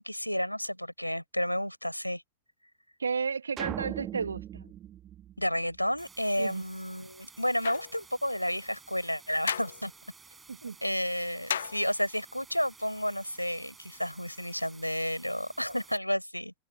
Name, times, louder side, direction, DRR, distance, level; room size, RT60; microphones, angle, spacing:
voice 1, 0.0-2.2 5.4-9.9 10.6-16.5, equal, 90° left, 4.8 m, -31 dB
voice 2, 3.0-4.7 6.4-6.6 10.5-10.8, right 5 dB, 75° right, 2.4 m, -33 dB
sound 1, 3.6-6.0, right 11 dB, 30° right, 2.2 m, -39 dB
sound 2, 6.0-16.0, right 4 dB, 15° right, 7.3 m, -54 dB
sound 3, 7.6-8.0 9.5-9.8 11.5-12.1, left 9 dB, 65° left, 0.6 m, -34 dB
figure-of-eight pair, 90°, 0 cm